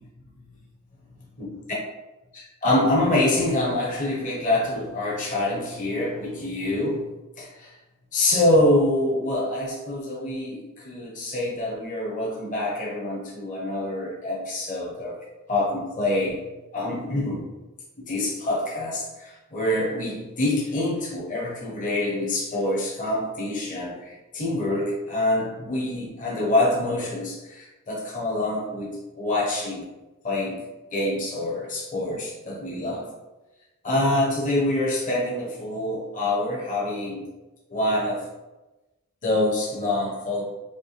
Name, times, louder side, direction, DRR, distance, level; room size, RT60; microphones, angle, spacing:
voice 1, 2.3-7.1 7.4-7.7 8.1-15.2 15.5-16.4 16.7-17.5 18.0-29.8 30.2-30.6 30.9-33.0 33.8-37.3 37.7-38.2 39.2-40.4, left 1 dB, 35° left, -3 dB, 0.9 m, -26 dB
5.3 x 2.2 x 3.2 m, 1.0 s
head